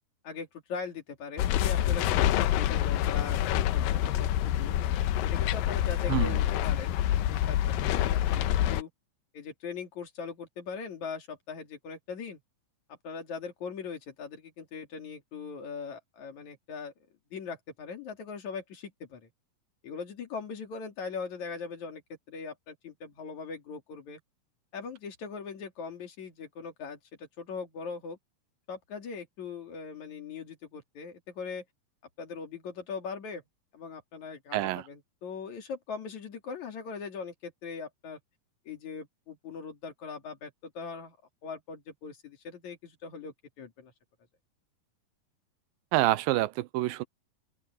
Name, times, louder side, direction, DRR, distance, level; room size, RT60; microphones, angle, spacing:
voice 1, 0.2-4.7 5.2-8.9 9.3-12.4 13.0-16.9 17.3-19.3 19.8-22.0 22.3-24.2 24.7-28.2 28.7-31.6 32.2-33.4 33.7-38.2 38.7-41.2 41.4-43.9, left 5 dB, 55° left, 4.0 m, -40 dB
sound 1, 1.4-8.8, left 12 dB, 85° left, 2.5 m, -27 dB
voice 2, 34.5-34.8 45.9-47.0, right 17 dB, 85° right, 2.4 m, -27 dB
omnidirectional pair, 4.1 m